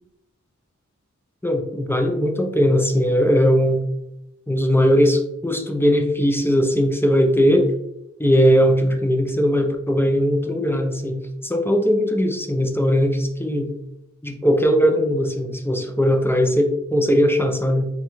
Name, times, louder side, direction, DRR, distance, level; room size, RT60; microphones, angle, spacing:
voice 1, 1.4-3.8 4.5-7.7 8.2-13.7 14.2-17.9, equal, 10° left, 3 dB, 0.5 m, -19 dB
3.7 x 2.2 x 3.0 m, 0.86 s
wide cardioid pair, 40°, 30 cm